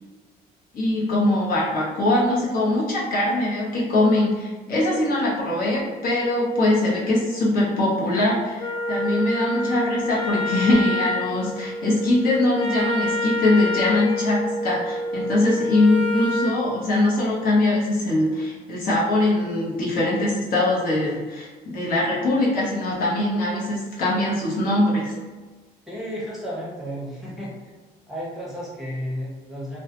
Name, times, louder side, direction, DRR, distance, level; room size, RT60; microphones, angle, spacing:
voice 1, 0.7-25.1, left 1 dB, 60° left, -5 dB, 0.8 m, -22 dB
Wind instrument woodwind instrument, 8.6-16.6, left 2 dB, 30° left, 0.4 m, -27 dB
voice 2, 25.9-27.5 28.1-29.8, equal, ahead, -7 dB, 0.8 m, -32 dB
2.2 x 2.1 x 2.8 m, 1.3 s
cardioid pair, 110°, 17 cm